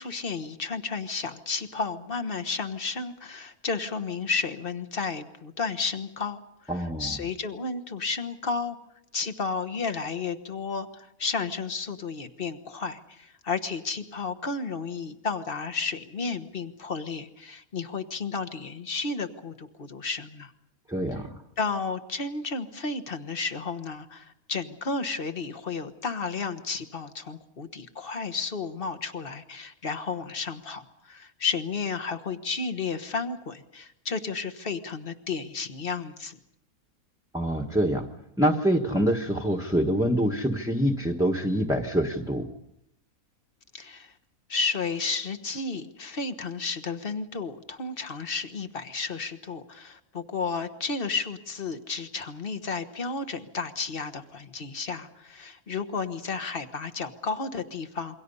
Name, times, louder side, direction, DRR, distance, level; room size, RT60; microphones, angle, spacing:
voice 1, 0.0-8.8 9.1-20.5 21.6-36.4 43.7-44.1 44.5-58.2, left 4 dB, 40° left, 10 dB, 1.4 m, -32 dB
voice 2, 6.7-7.1 20.9-21.3 37.3-38.1 38.4-42.5, equal, 5° right, 1 dB, 1.3 m, -25 dB
27.5 x 23.5 x 5.5 m, 0.79 s
omnidirectional pair, 1.5 m